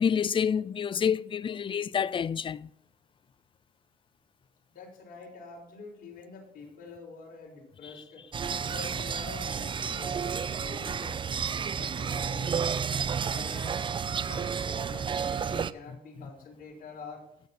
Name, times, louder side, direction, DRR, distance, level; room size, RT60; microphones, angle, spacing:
voice 1, 0.0-2.7 7.8-7.9, left 7 dB, 30° left, 0.5 m, -28 dB
voice 2, 4.7-11.4 11.8-13.8 14.2-17.3, left 4 dB, 60° left, 5.3 m, -46 dB
sound 1, 8.3-15.7, right 6 dB, 30° right, 0.5 m, -31 dB
21.0 x 8.0 x 4.2 m
cardioid pair, 110°, 17 cm